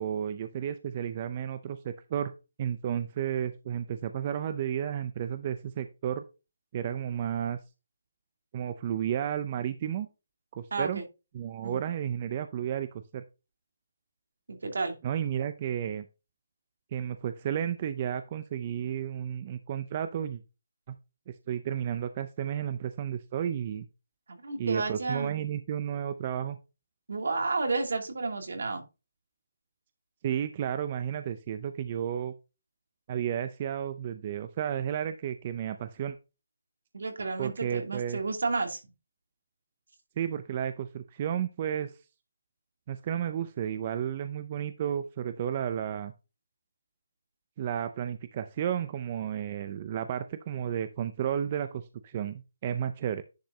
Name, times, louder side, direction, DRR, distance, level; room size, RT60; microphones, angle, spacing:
voice 1, 0.0-2.3 2.6-6.2 6.7-7.6 8.5-10.1 10.6-11.0 11.3-12.9 13.1-13.2 15.0-16.1 16.9-20.4 20.9-21.0 21.5-23.9 24.6-26.6 30.2-32.3 33.1-36.2 37.4-38.2 40.2-41.9 42.9-46.1 47.6-53.2, right 9 dB, 30° right, 11 dB, 0.5 m, -32 dB
voice 2, 10.7-11.0 11.6-11.8 14.5-15.0 24.3-25.4 27.1-28.8 36.9-38.8, right 3 dB, 70° right, 4 dB, 2.7 m, -31 dB
10.5 x 5.0 x 2.8 m, 0.27 s
hypercardioid pair, 170°, 0 cm